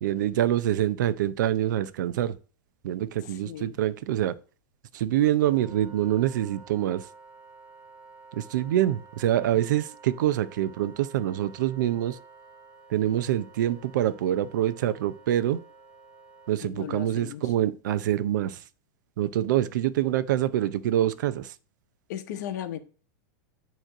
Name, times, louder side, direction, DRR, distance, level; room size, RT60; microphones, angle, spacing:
voice 1, 0.0-2.4 2.8-4.3 4.9-7.1 8.3-12.2 12.9-15.6 16.5-18.6 19.2-21.5, right 12 dB, 75° right, 0.6 m, -25 dB
voice 2, 3.2-3.8 16.6-17.5 22.1-22.8, left 10 dB, 65° left, 1.0 m, -36 dB
Wind instrument woodwind instrument, 5.3-16.6, right 4 dB, 15° right, 1.7 m, -51 dB
9.1 x 3.1 x 4.9 m
supercardioid pair, 150°, 10 cm